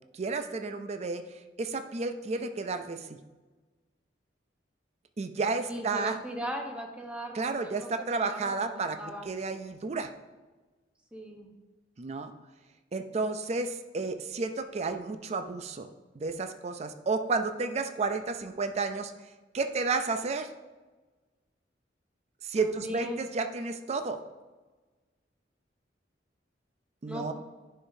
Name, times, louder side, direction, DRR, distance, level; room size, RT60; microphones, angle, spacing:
voice 1, 0.1-3.2 5.2-6.2 7.3-9.0 9.2-10.1 12.0-12.3 12.9-15.9 16.1-19.1 19.5-20.5 22.4-24.2 27.0-27.3, right 4 dB, 35° right, 8 dB, 0.4 m, -32 dB
voice 2, 5.7-9.3 11.1-11.5 22.5-23.3 27.1-27.3, equal, 5° right, 1 dB, 0.9 m, -38 dB
9.9 x 5.6 x 2.7 m, 1.2 s
head